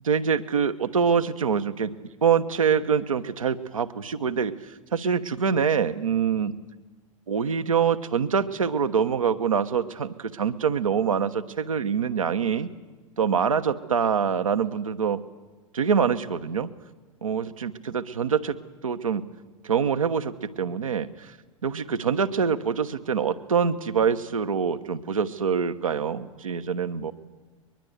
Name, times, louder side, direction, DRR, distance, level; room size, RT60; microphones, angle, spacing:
voice 1, 0.0-1.9 2.2-6.5 7.3-12.7 13.2-15.2 15.7-16.7 17.2-18.6 18.8-19.2 19.6-21.3 21.6-27.1, right 6 dB, 80° right, 8 dB, 1.2 m, -25 dB
22.5 x 21.5 x 8.1 m, 1.3 s
figure-of-eight pair, 90°, 17 cm